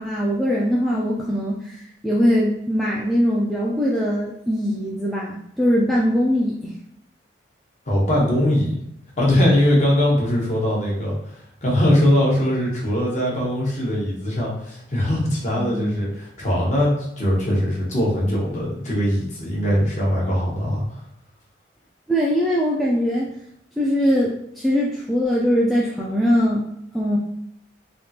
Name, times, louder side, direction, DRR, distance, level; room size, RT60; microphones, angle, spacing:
voice 1, 0.0-1.7 2.0-6.7 15.6-16.0 22.1-23.3 23.8-26.6 26.9-27.2, equal, ahead, -6 dB, 0.3 m, -21 dB
voice 2, 7.9-8.7 9.2-11.1 11.6-20.8, left 1 dB, 40° left, -4 dB, 1.0 m, -21 dB
3.5 x 2.4 x 2.7 m, 0.78 s
head